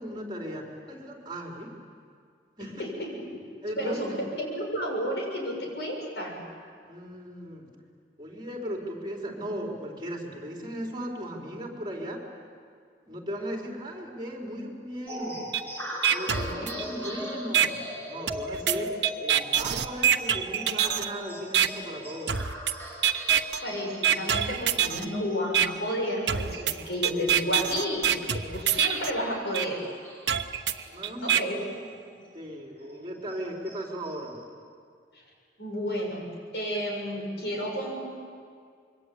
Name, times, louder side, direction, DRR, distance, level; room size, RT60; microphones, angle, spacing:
voice 1, 0.0-1.7 2.6-3.2 3.6-4.2 6.8-7.7 8.2-12.2 13.1-15.5 16.1-17.8 18.1-18.9 19.2-22.3 30.9-31.6 31.9-34.4, equal, 25° right, -1 dB, 4.0 m, -37 dB
voice 2, 2.6-3.4 3.8-6.4 16.3-16.7 23.6-29.8 31.2-31.7 35.6-36.3 36.5-38.1, equal, 75° left, 0 dB, 7.2 m, -31 dB
sound 1, 15.1-32.0 32.3-32.4 32.8-34.4, equal, 15° left, 5.4 m, -40 dB
sound 2, 15.5-15.6 16.0-17.1 17.5-17.7 18.3-21.1 21.5-21.7 22.3-22.7 23.0-23.6 24.0-25.1 25.5-25.7 26.3-29.1 29.5-29.7 30.3-31.4, right 9 dB, 85° right, 1.0 m, -25 dB
26.5 x 23.0 x 8.6 m, 2.1 s
head